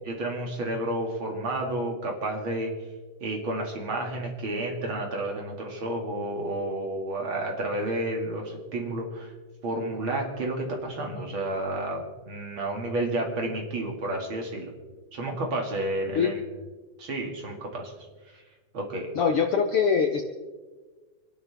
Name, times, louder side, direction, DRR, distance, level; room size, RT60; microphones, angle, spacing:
voice 1, 0.1-2.7 3.2-9.3 9.6-14.7 15.1-16.4 17.0-17.9 18.3-18.4 18.7-19.1, right 1 dB, 40° right, 1 dB, 2.6 m, -31 dB
voice 2, 19.1-20.2, left 6 dB, 90° left, 5 dB, 1.2 m, -23 dB
27.5 x 11.5 x 3.5 m, 1.3 s
omnidirectional pair, 3.7 m